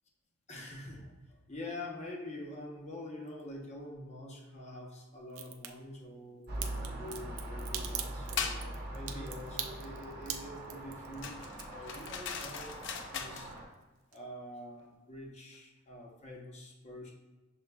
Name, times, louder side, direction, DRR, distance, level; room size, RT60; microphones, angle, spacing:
voice 1, 0.5-11.4 11.7-12.8 13.1-13.5 14.1-17.1, left 1 dB, 30° left, 0 dB, 0.8 m, -46 dB
Crack, 5.3-5.7 6.6-12.9 13.2-13.8 14.1-14.2, right 10 dB, 85° right, 0.5 m, -41 dB
sound 1, 6.5-13.7, right 1 dB, 50° right, 0.9 m, -42 dB
sound 2, 8.4-8.7 11.2-13.5, left 6 dB, 60° left, 0.4 m, -39 dB
6.8 x 3.1 x 2.2 m, 1.1 s
head